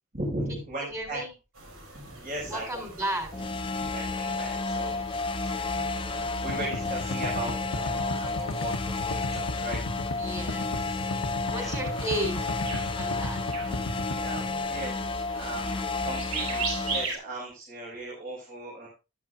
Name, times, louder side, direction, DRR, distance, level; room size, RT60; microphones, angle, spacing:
voice 1, 0.1-1.2 2.0-2.8 3.8-5.0 5.4-9.8 11.5-11.8 14.1-18.9, right 1 dB, 40° right, -4 dB, 5.0 m, -38 dB
voice 2, 0.8-1.3 2.5-3.5 10.2-11.1 11.5-12.6 12.9-13.4, right 1 dB, 15° right, 4 dB, 3.8 m, -34 dB
sound 1, 1.5-17.2, right 4 dB, 85° right, 5.0 m, -41 dB
sound 2, 3.3-17.0, left 3 dB, 25° left, 0.5 m, -31 dB
sound 3, 6.5-14.4, left 2 dB, 90° left, 1.2 m, -35 dB
14.0 x 12.5 x 2.4 m, 0.29 s
head